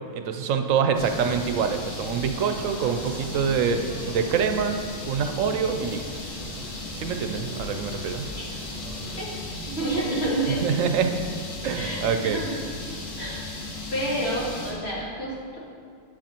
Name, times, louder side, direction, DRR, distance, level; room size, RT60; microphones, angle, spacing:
voice 1, 0.1-4.7 5.1-6.0 6.9-8.3 10.6-11.2 11.6-12.4, right 6 dB, 85° right, 6 dB, 1.1 m, -25 dB
sound 1, 0.9-14.7, left 2 dB, 85° left, 1.8 m, -36 dB
sound 2, 2.0-9.2, right 3 dB, 40° right, 0.6 m, -42 dB
voice 2, 7.2-7.6 8.4-8.5 9.2-9.3 9.7-10.9 11.7-12.7 13.2-13.4 13.9-15.6, right 1 dB, 55° left, -6 dB, 2.3 m, -29 dB
8.9 x 7.6 x 4.4 m, 2.1 s
omnidirectional pair, 1.3 m